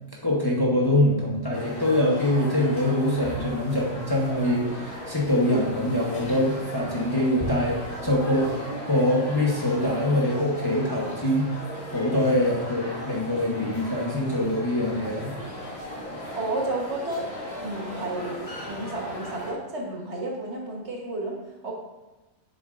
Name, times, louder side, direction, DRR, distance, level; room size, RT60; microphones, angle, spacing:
voice 1, 0.2-8.5 8.8-11.5 11.9-15.4, left 1 dB, 20° left, -3 dB, 1.0 m, -24 dB
sound 1, 1.5-19.5, equal, 55° left, 2.0 m, -37 dB
voice 2, 16.3-17.3 17.6-21.4 21.6-21.7, right 2 dB, 60° right, -1 dB, 1.6 m, -32 dB
7.9 x 6.8 x 2.6 m, 1.1 s
omnidirectional pair, 1.3 m